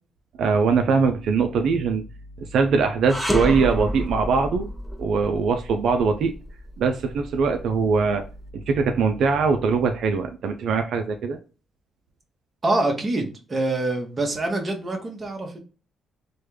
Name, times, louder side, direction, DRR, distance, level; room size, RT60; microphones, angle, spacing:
voice 1, 0.4-2.0 2.4-4.7 5.0-6.3 6.8-8.2 8.5-11.4, right 5 dB, 70° right, 0.3 m, -22 dB
sound 1, 3.1-8.3, equal, 5° left, 0.5 m, -30 dB
voice 2, 12.6-15.6, right 2 dB, 30° right, 1.0 m, -25 dB
3.2 x 2.2 x 3.1 m
cardioid pair, 90°, 0 cm